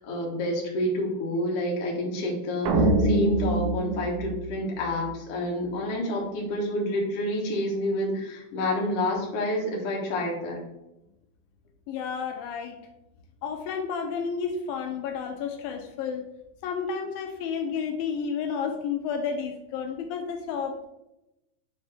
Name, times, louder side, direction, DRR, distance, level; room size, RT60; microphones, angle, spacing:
voice 1, 0.0-10.6, left 1 dB, 55° left, -2 dB, 1.9 m, -29 dB
sound 1, 2.7-5.1, right 2 dB, 80° right, 1.6 m, -25 dB
voice 2, 11.9-12.8 13.4-16.2 16.6-20.9, left 6 dB, 85° left, 4 dB, 2.3 m, -31 dB
6.8 x 4.0 x 3.4 m, 0.92 s
omnidirectional pair, 4.1 m